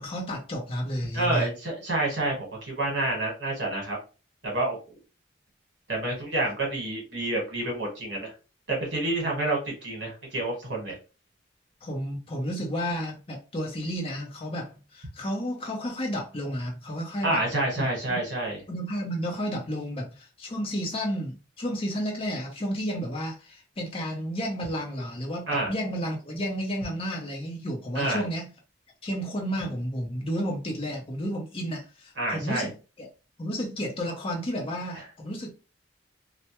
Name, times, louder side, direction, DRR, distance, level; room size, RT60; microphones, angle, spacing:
voice 1, 0.0-1.5 11.8-17.4 17.8-18.2 18.7-28.5 29.0-33.1 33.4-35.6, equal, 30° left, 0.6 m, -32 dB
voice 2, 1.1-4.0 4.4-5.0 5.9-8.3 8.7-11.0 17.2-18.6 25.5-25.7 27.9-28.2 32.2-32.7 34.9-35.0, right 2 dB, 60° right, 1.1 m, -28 dB
2.2 x 2.1 x 2.8 m
head